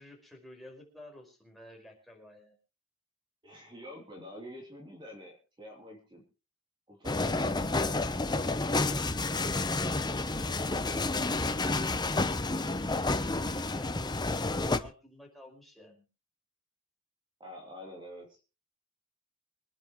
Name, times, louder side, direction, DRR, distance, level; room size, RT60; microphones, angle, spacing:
voice 1, 0.0-2.6 12.5-16.0, left 1 dB, ahead, 0 dB, 5.3 m, -52 dB
voice 2, 3.4-6.2 6.9-8.6 8.9-11.0 17.4-18.4, equal, 20° right, -1 dB, 3.4 m, -48 dB
sound 1, 7.0-14.8, left 2 dB, 20° left, 0.9 m, -30 dB
25.5 x 10.5 x 3.2 m, 0.32 s
head